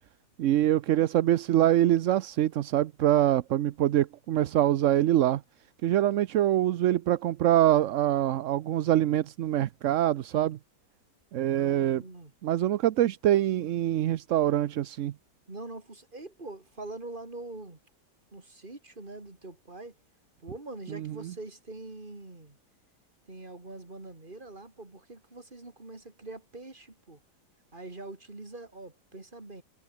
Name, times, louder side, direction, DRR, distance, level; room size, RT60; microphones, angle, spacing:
voice 1, 0.4-5.4 5.8-10.6 11.3-12.0 12.4-15.1 20.9-21.1, right 12 dB, 65° right, 0.8 m, -24 dB
voice 2, 11.5-12.3 15.5-17.8 18.3-19.9 20.4-22.6 23.3-27.2 27.7-29.6, right 2 dB, 30° right, 3.5 m, -43 dB
omnidirectional pair, 1.8 m